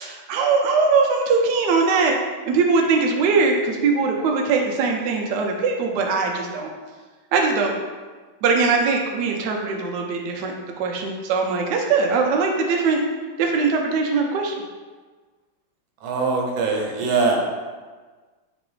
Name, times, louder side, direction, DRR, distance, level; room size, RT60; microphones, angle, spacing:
voice 1, 0.0-2.2 2.5-6.7 7.3-7.7 8.4-13.1 13.4-14.5, right 4 dB, 90° right, 1 dB, 0.9 m, -21 dB
voice 2, 16.0-17.4, right 4 dB, 70° right, 0 dB, 1.3 m, -22 dB
4.0 x 3.0 x 3.0 m, 1.4 s
omnidirectional pair, 2.4 m